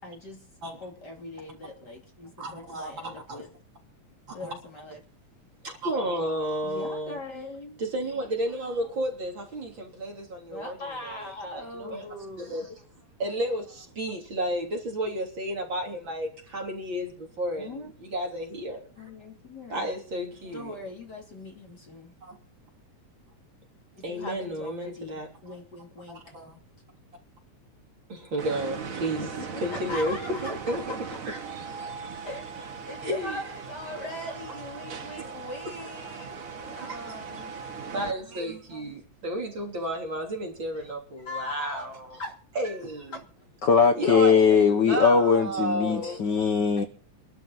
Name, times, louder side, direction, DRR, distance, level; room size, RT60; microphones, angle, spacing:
voice 1, 0.0-0.5 0.8-3.5 4.3-5.0 6.6-7.8 10.5-12.6 17.6-17.9 19.0-19.9 20.5-22.1 23.9-26.2 29.2-31.0 32.2-37.6 40.7-40.9 41.2-41.9 42.2-42.4 43.1-43.2, left 2 dB, 35° left, 1 dB, 3.2 m, -40 dB
voice 2, 2.4-3.5 4.3-4.5 5.6-7.2 7.8-10.8 11.0-12.0 12.4-12.7 13.2-18.8 19.7-20.8 22.2-22.4 24.0-25.3 26.1-26.6 28.1-29.3 29.6-30.8 31.3-31.4 33.0-33.4 35.2-35.3 36.0-36.1 36.9-37.0 37.9-42.2 42.6-43.1 43.9-46.2, right 1 dB, 40° right, 0 dB, 3.9 m, -32 dB
sound 1, 28.4-38.1, right 5 dB, 65° right, 0.8 m, -39 dB
voice 3, 43.6-46.8, left 6 dB, 75° left, 6 dB, 1.0 m, -20 dB
23.5 x 12.5 x 4.0 m, 0.41 s
omnidirectional pair, 3.4 m